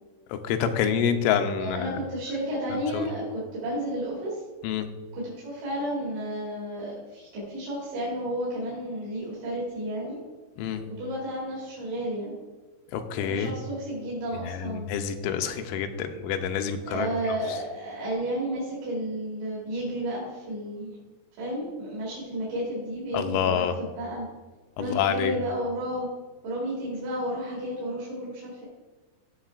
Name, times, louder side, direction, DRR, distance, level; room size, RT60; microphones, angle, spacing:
voice 1, 0.3-2.0 2.9-3.1 4.6-4.9 10.6-10.8 12.9-13.5 14.4-17.1 23.1-23.8 24.8-25.4, left 8 dB, 85° left, 7 dB, 3.0 m, -27 dB
voice 2, 1.6-4.4 5.1-10.2 10.8-12.3 13.2-15.0 16.9-21.0 21.4-24.3 24.8-26.1 26.4-28.7, equal, 75° right, -7 dB, 4.9 m, -32 dB
17.0 x 5.8 x 2.5 m, 1.3 s
omnidirectional pair, 5.4 m